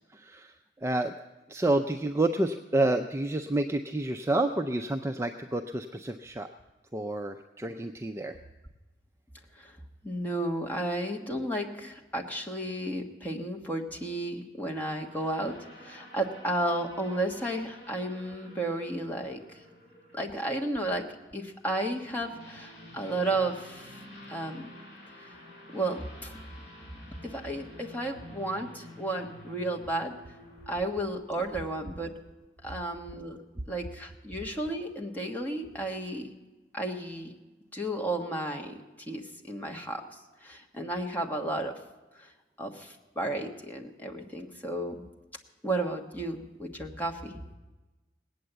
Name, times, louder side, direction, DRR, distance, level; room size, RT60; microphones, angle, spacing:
voice 1, 0.1-0.5 0.8-1.1 1.5-6.5 6.9-8.4, right 2 dB, 15° right, 6 dB, 0.4 m, -29 dB
voice 2, 10.0-15.5 15.8-19.4 20.1-21.0 21.3-24.0 24.3-24.7 25.2-25.3 25.7-26.3 27.2-30.2 30.7-32.1 32.6-33.4 33.7-36.3 36.7-37.3 37.7-38.7 39.1-40.0 40.4-41.8 42.2-42.3 42.6-45.0 45.6-47.4, right 1 dB, 10° left, 1 dB, 1.3 m, -33 dB
sound 1, 14.8-31.2, left 1 dB, 45° left, 5.2 m, -50 dB
19.0 x 8.6 x 7.9 m, 1.1 s
head